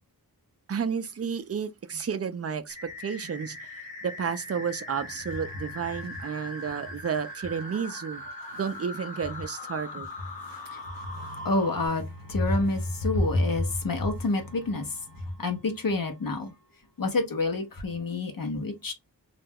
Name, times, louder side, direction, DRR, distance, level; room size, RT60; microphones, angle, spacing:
voice 1, 0.7-8.2 8.5-10.1, right 6 dB, 40° right, 0.4 m, -32 dB
sound 1, 2.7-11.9, left 1 dB, 20° left, 0.8 m, -40 dB
voice 2, 10.4-16.5 17.0-18.9, left 2 dB, 60° left, 0.7 m, -28 dB
2.3 x 2.1 x 3.4 m
wide cardioid pair, 70°, 39 cm